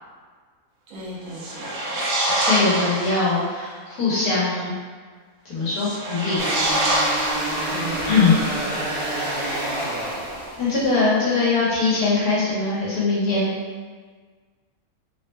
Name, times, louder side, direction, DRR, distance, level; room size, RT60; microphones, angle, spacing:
voice 1, 0.9-2.1 7.6-8.2, equal, 60° right, -5 dB, 1.1 m, -38 dB
sound 1, 1.3-3.4 5.7-8.1, right 1 dB, 85° right, 1.1 m, -25 dB
voice 2, 2.3-4.7 5.4-6.4 8.1-8.4 9.4-9.7 10.6-13.5, left 4 dB, 85° left, -7 dB, 1.5 m, -21 dB
sound 2, 6.4-10.9, right 1 dB, 35° right, 0.4 m, -28 dB
3.6 x 2.1 x 3.2 m, 1.5 s
omnidirectional pair, 1.6 m